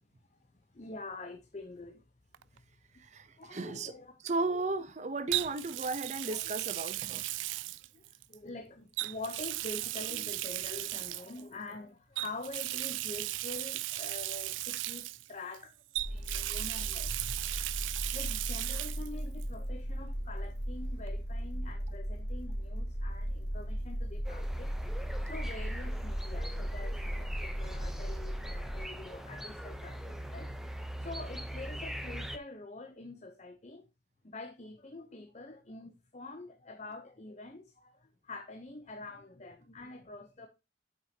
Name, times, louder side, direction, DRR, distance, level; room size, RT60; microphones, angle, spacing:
voice 1, 0.7-2.0 2.5-2.6 3.4-4.6 6.3-6.5 7.9-15.7 16.1-17.4 18.1-24.7 25.3-30.5 31.0-33.9 34.2-40.5, left 2 dB, 35° left, 0.7 m, -46 dB
Water tap faucet, 2.3-2.6 5.3-8.4 8.9-11.4 12.2-15.6 15.9-19.1 19.4-19.5 21.1-21.2, right 18 dB, 80° right, 0.3 m, -36 dB
voice 2, 3.0-3.9 4.2-7.2, right 3 dB, 40° right, 0.6 m, -35 dB
sound 1, 16.0-28.8, equal, 60° left, 2.0 m, -37 dB
sound 2, 24.2-32.4, equal, ahead, 0.6 m, -42 dB
8.2 x 6.1 x 2.8 m
head